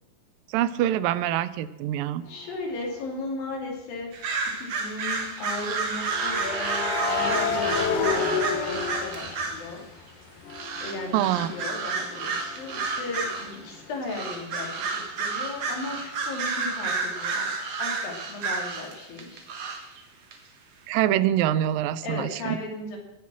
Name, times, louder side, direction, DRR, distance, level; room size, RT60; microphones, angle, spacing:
voice 1, 0.5-2.2 11.1-11.5 20.9-22.6, right 12 dB, 85° right, 15 dB, 2.4 m, -25 dB
voice 2, 2.3-4.1 4.6-9.8 10.8-17.5 17.8-19.5 22.0-23.0, left 2 dB, 90° left, 0 dB, 4.5 m, -36 dB
sound 1, 2.8-3.0 6.1-10.0 10.4-14.0, left 5 dB, 75° left, 2.9 m, -30 dB
sound 2, 4.1-9.7 10.5-13.6 14.0-20.0 20.3-20.4, right 4 dB, 55° right, 2.5 m, -31 dB
20.0 x 7.4 x 6.3 m, 0.90 s
omnidirectional pair, 4.0 m